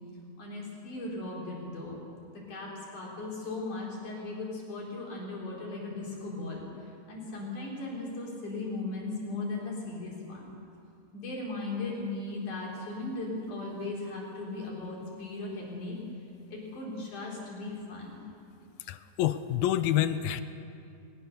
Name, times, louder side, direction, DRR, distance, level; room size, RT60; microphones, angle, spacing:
voice 1, 0.4-2.0 2.5-10.5 11.1-16.0 16.5-18.2, left 2 dB, 55° left, -3 dB, 5.4 m, -37 dB
voice 2, 18.9-20.4, left 12 dB, 85° left, 12 dB, 2.5 m, -27 dB
21.5 x 20.0 x 6.8 m, 2.5 s
omnidirectional pair, 4.2 m